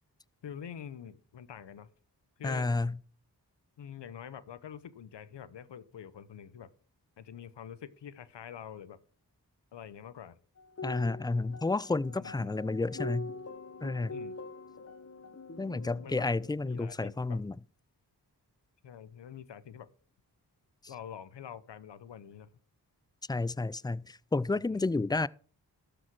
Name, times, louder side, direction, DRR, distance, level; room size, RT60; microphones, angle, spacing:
voice 1, 0.4-1.9 2.4-2.7 3.8-6.7 7.2-9.0 9.7-10.4 12.2-12.6 14.1-14.4 16.0-16.3 16.6-17.4 18.8-19.9 20.9-22.5 24.5-24.9, left 8 dB, 85° left, 0.8 m, -46 dB
voice 2, 2.4-3.0 10.8-13.3 13.8-14.1 15.6-17.6 23.3-25.3, left 3 dB, 10° left, 0.4 m, -31 dB
sound 1, 10.6-16.5, left 3 dB, 35° left, 1.1 m, -44 dB
12.5 x 5.2 x 6.0 m
cardioid pair, 40°, 42 cm